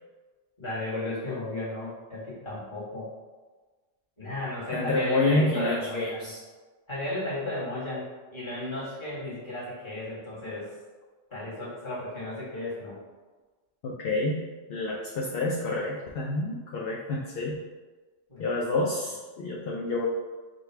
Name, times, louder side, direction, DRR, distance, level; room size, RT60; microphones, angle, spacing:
voice 1, 0.6-3.1 4.2-6.3 6.9-10.7 11.3-13.0 18.3-18.6, left 1 dB, 25° left, -9 dB, 1.5 m, -34 dB
voice 2, 4.7-6.4 13.8-14.4 14.7-17.6 18.4-20.1, left 2 dB, 60° left, -2 dB, 0.6 m, -28 dB
3.8 x 2.3 x 4.4 m, 1.3 s
omnidirectional pair, 1.3 m